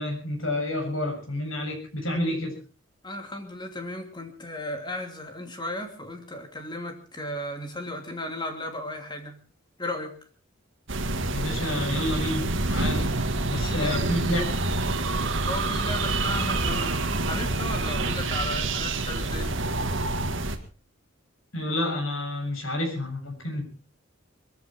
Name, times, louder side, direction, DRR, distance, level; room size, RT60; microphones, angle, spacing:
voice 1, 0.0-2.5 11.3-13.0 13.4-14.4 21.5-23.6, left 1 dB, 85° left, 3 dB, 7.3 m, -29 dB
voice 2, 3.0-9.4 9.8-10.1 13.5-14.1 15.4-19.6, left 1 dB, 20° left, 5 dB, 2.8 m, -35 dB
sound 1, 10.9-20.6, right 2 dB, 65° right, 2.0 m, -27 dB
22.0 x 14.5 x 4.5 m, 0.36 s
head